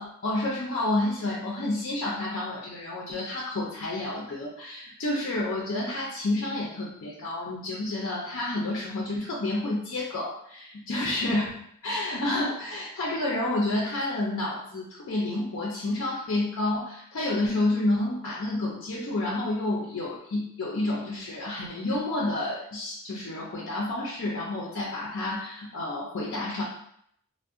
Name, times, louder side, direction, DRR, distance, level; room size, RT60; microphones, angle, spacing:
voice 1, 0.0-11.4 11.8-26.6, left 2 dB, 60° left, -4 dB, 0.5 m, -29 dB
2.4 x 2.1 x 3.6 m, 0.69 s
head